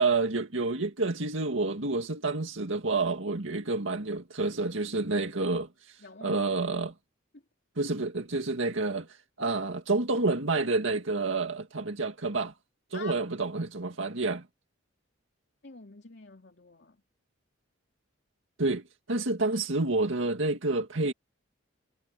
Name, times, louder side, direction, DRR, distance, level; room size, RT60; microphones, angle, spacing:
voice 1, 0.0-6.9 7.8-9.1 9.4-12.5 12.9-14.4 18.6-18.8 19.1-21.1, right 3 dB, 80° right, 2.0 m, -29 dB
voice 2, 6.0-6.4 6.7-6.9 12.9-13.1 15.6-17.0, left 4 dB, 55° left, 2.9 m, -46 dB
head